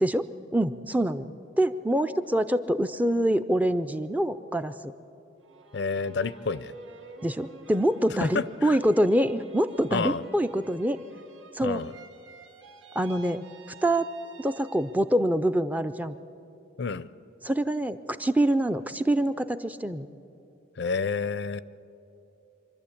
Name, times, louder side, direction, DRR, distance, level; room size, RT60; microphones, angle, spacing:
voice 1, 0.0-4.7 7.2-11.0 11.5-11.8 13.0-13.4 13.8-14.1 14.4-16.1 17.4-20.1, right 1 dB, 10° right, 10 dB, 0.4 m, -25 dB
sound 1, 5.4-15.2 15.6-16.3, right 4 dB, 75° right, 2.4 m, -50 dB
voice 2, 5.7-6.7 8.2-8.8 9.9-10.2 11.6-11.9 16.8-17.1 20.8-21.6, left 4 dB, 60° left, 16 dB, 0.5 m, -29 dB
25.5 x 12.5 x 8.5 m, 2.8 s
head